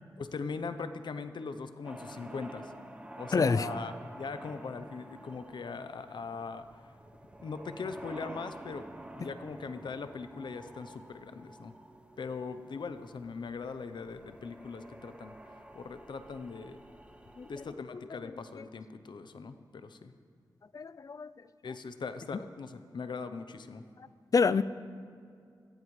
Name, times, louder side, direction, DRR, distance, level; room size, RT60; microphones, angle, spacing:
voice 1, 0.2-2.7 3.2-6.9 7.4-8.9 9.1-11.7 12.2-16.8 17.5-20.1 21.6-23.8, left 4 dB, 80° left, 10 dB, 0.7 m, -40 dB
sound 1, 1.8-17.7, right 1 dB, 15° right, 1.0 m, -49 dB
voice 2, 3.3-3.7 17.4-17.5 18.6-18.7 20.7-21.3 24.3-24.6, left 5 dB, 50° left, 16 dB, 0.4 m, -27 dB
18.0 x 15.0 x 3.2 m, 2.3 s
wide cardioid pair, 80°, 8 cm